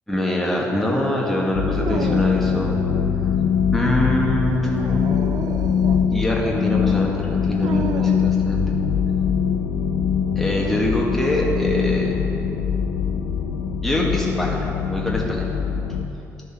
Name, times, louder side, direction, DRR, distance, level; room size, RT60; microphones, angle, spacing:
voice 1, 0.1-2.8 3.7-5.0 6.1-8.6 10.3-12.1 13.8-15.5, left 1 dB, 5° left, -3 dB, 1.7 m, -24 dB
sound 1, 1.5-16.1, left 7 dB, 70° left, 0.7 m, -22 dB
Dog, 1.7-2.7 4.6-6.1 7.6-8.4, right 6 dB, 50° right, 0.6 m, -32 dB
12.0 x 6.4 x 4.5 m, 2.9 s
hypercardioid pair, 50°, 8 cm